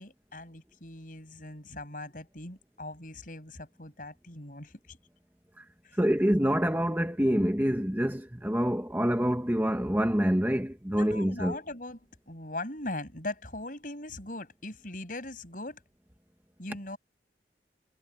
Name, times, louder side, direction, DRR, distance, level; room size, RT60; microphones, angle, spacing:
voice 1, 0.0-5.0 5.8-6.0 10.9-12.0 12.3-15.8 16.6-17.0, left 2 dB, 50° left, 6.1 m, -40 dB
voice 2, 6.0-11.6, equal, 10° right, 1.3 m, -26 dB
head